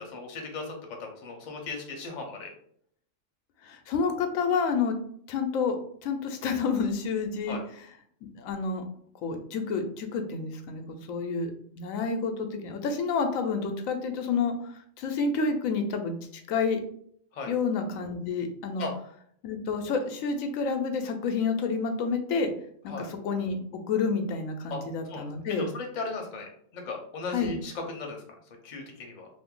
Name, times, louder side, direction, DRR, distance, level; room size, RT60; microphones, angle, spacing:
voice 1, 0.1-0.7 1.0-2.5 7.5-7.6 17.3-17.5 18.8-18.9 22.9-23.1 24.7-24.8 25.1-28.2 28.6-29.3, left 3 dB, 45° left, 2 dB, 0.7 m, -37 dB
voice 2, 3.6-5.0 5.3-5.8 6.0-7.6 8.4-8.8 9.2-11.5 11.8-14.7 15.0-16.1 16.5-16.8 17.5-18.9 19.4-22.5 22.8-23.6 23.9-25.7 27.3-27.6, left 5 dB, 90° left, 6 dB, 1.0 m, -29 dB
2.6 x 2.5 x 3.7 m, 0.63 s
omnidirectional pair, 1.3 m